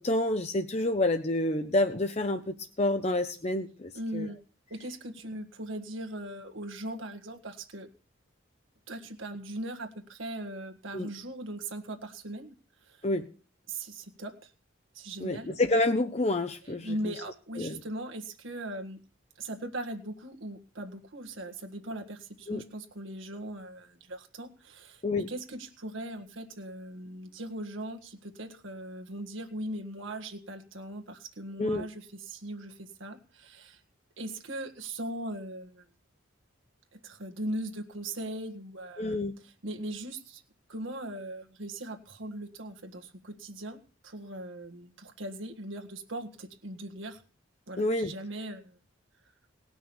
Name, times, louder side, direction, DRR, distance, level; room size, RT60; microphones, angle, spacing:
voice 1, 0.0-4.3 10.9-11.1 13.0-13.3 15.2-17.1 17.6-17.8 22.5-22.6 25.0-25.3 31.6-31.9 39.0-39.4 47.8-48.1, left 2 dB, 30° left, 8 dB, 0.7 m, -28 dB
voice 2, 3.9-4.4 4.7-7.9 8.9-12.5 12.8-13.0 13.7-14.5 14.9-15.5 16.6-19.0 19.4-33.8 34.2-35.8 36.9-39.2 39.4-40.4 40.7-47.2 47.7-48.8, right 1 dB, 70° right, 5 dB, 1.6 m, -39 dB
18.5 x 6.2 x 7.2 m, 0.37 s
head